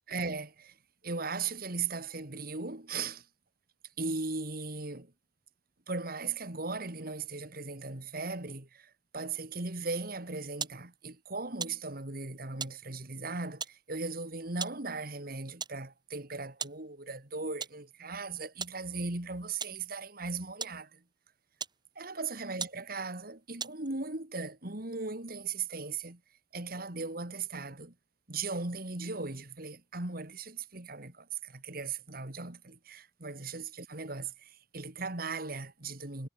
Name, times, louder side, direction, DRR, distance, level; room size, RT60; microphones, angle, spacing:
voice 1, 0.1-0.8 1.0-3.3 4.0-5.1 5.9-21.0 22.0-26.2 26.5-27.9 28.3-36.3, right 4 dB, 60° right, 2.9 m, -38 dB
sound 1, 10.6-10.8 11.6-11.8 12.6-12.8 13.6-13.8 14.6-14.8 15.6-15.8 16.6-16.8 17.6-17.8 18.6-18.8 19.6-19.8 20.6-20.8 21.6-21.8 22.3-22.4 22.6-22.8 23.6-23.9, right 6 dB, 25° right, 2.3 m, -38 dB
head